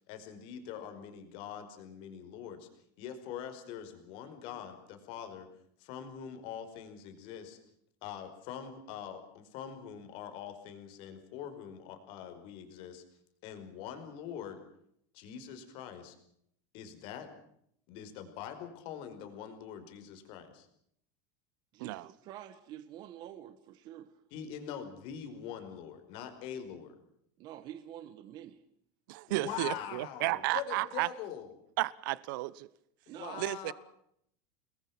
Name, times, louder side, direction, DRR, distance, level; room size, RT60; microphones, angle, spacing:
voice 1, 0.1-2.7 3.0-5.5 5.8-7.6 8.0-13.0 13.4-14.6 15.1-16.2 16.7-17.3 17.9-20.7 24.3-26.9 29.3-31.5 33.1-33.7, left 9 dB, 50° left, 5.1 m, -43 dB
voice 2, 21.7-24.1 27.4-28.6 33.1-33.5, right 11 dB, 35° right, 1.4 m, -47 dB
voice 3, 29.1-31.1 31.8-32.7 33.4-33.7, right 19 dB, 65° right, 1.0 m, -33 dB
29.0 x 21.5 x 6.1 m
supercardioid pair, 165°, 12 cm